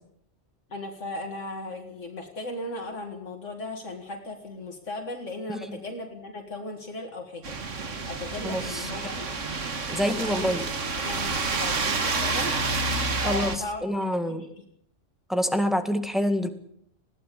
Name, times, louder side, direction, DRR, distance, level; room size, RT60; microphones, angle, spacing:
voice 1, 0.7-7.5 8.0-9.3 9.9-10.5 11.0-12.6 13.2-14.5, left 2 dB, 80° left, 2 dB, 2.4 m, -37 dB
sound 1, 7.4-13.6, right 3 dB, 85° right, 2.1 m, -29 dB
voice 2, 8.4-8.8 9.9-10.7 13.2-13.5 13.8-14.4 15.3-16.5, equal, ahead, 7 dB, 1.8 m, -26 dB
20.5 x 15.5 x 8.4 m, 0.71 s
omnidirectional pair, 1.2 m